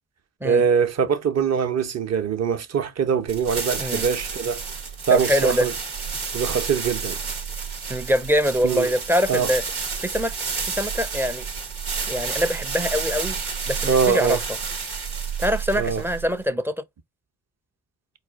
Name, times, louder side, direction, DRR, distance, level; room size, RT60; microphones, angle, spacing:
voice 1, 0.4-4.6 5.1-5.7 6.3-7.2 8.6-8.9 9.3-9.5 13.9-14.4 15.8-16.0, right 7 dB, 35° right, 0.8 m, -22 dB
sound 1, 3.3-16.4, right 5 dB, 80° right, 1.1 m, -30 dB
voice 2, 5.1-5.7 7.9-9.6 10.0-10.3 10.7-11.5 12.1-13.4 13.7-14.4 15.4-16.7, equal, 5° right, 0.6 m, -23 dB
4.7 x 2.5 x 3.5 m
figure-of-eight pair, 40°, 45 cm